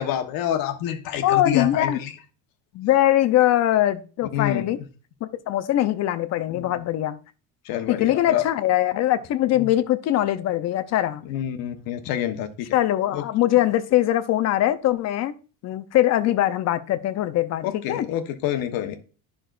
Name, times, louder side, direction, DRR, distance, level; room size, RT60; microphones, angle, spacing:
voice 1, 0.0-2.1 4.3-4.7 6.5-6.7 7.6-8.4 9.6-9.7 11.3-12.7 13.1-13.2 17.6-19.0, left 11 dB, 65° left, 1.1 m, -27 dB
voice 2, 1.2-2.0 2.7-4.8 5.2-7.2 7.9-11.2 12.7-15.3 15.6-18.1, left 13 dB, 45° left, 0.6 m, -22 dB
10.0 x 6.1 x 2.5 m
cardioid pair, 145°, 38 cm